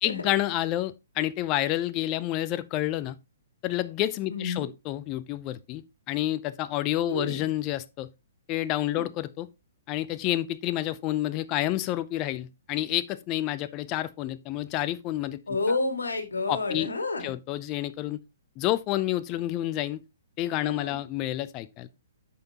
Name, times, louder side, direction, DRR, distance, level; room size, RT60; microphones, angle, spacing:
voice 1, 0.0-3.2 3.6-8.1 8.5-9.5 9.9-15.4 16.5-16.9 17.2-18.2 18.6-20.0 20.4-21.9, left 14 dB, 30° left, 0.5 m, -29 dB
voice 2, 4.3-4.7 7.1-7.4 8.9-9.1 15.5-17.3 20.6-21.0, left 3 dB, 75° left, 2.0 m, -30 dB
8.8 x 5.6 x 2.9 m
figure-of-eight pair, 120°, 0 cm